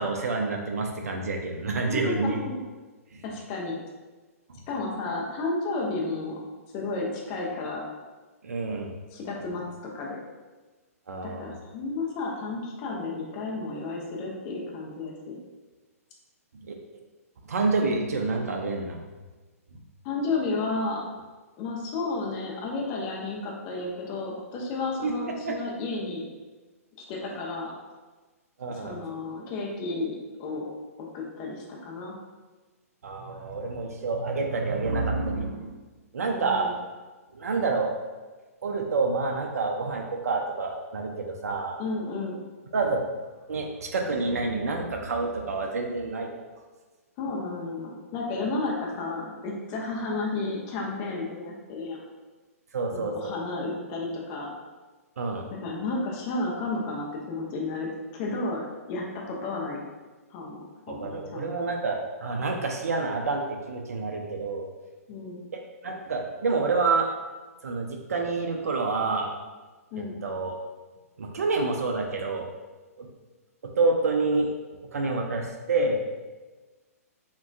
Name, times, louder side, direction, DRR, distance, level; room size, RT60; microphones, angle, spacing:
voice 1, 0.0-2.4 3.1-3.2 4.5-4.6 8.4-8.9 11.1-11.6 16.7-16.8 17.5-19.0 25.0-25.1 25.4-25.6 28.6-29.0 33.0-35.7 36.1-36.7 37.3-37.9 38.6-41.8 42.7-43.0 43.5-46.3 52.7-53.3 55.2-55.5 60.9-64.6 65.8-67.1 67.6-69.3 70.0-70.5 71.2-72.5 73.0-73.1 73.6-74.5 74.9-76.0, right 3 dB, 75° right, 1 dB, 0.4 m, -28 dB
voice 2, 1.8-2.6 3.2-3.8 4.7-6.4 6.7-7.8 9.1-9.6 9.9-10.2 11.2-15.4 20.0-21.0 21.6-26.3 27.0-27.7 28.7-30.7 31.0-32.1 36.2-36.8 41.8-42.4 47.2-52.0 52.9-54.5 55.5-59.8 60.3-61.5 65.1-65.4 69.9-70.2, left 3 dB, 30° left, -2 dB, 0.5 m, -32 dB
3.5 x 2.2 x 2.5 m, 1.3 s
figure-of-eight pair, 125°, 8 cm